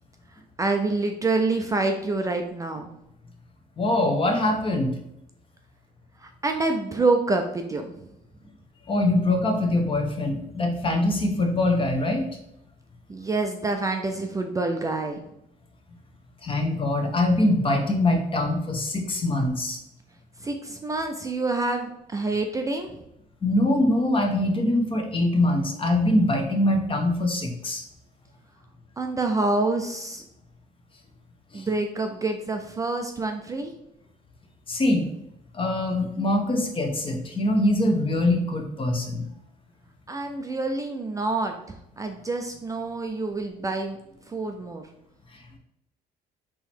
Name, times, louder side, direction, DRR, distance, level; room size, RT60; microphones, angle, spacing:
voice 1, 0.3-2.9 6.2-8.0 13.1-15.2 20.4-23.0 29.0-30.3 31.5-33.7 40.1-44.0 44.2-44.8, right 3 dB, 20° right, 4 dB, 0.4 m, -27 dB
voice 2, 3.8-4.9 8.9-12.2 16.4-19.8 23.4-27.8 31.5-31.7 34.7-35.1 35.5-39.3, left 1 dB, 30° left, 3 dB, 1.0 m, -23 dB
3.8 x 3.0 x 4.4 m, 0.79 s
cardioid pair, 110°, 17 cm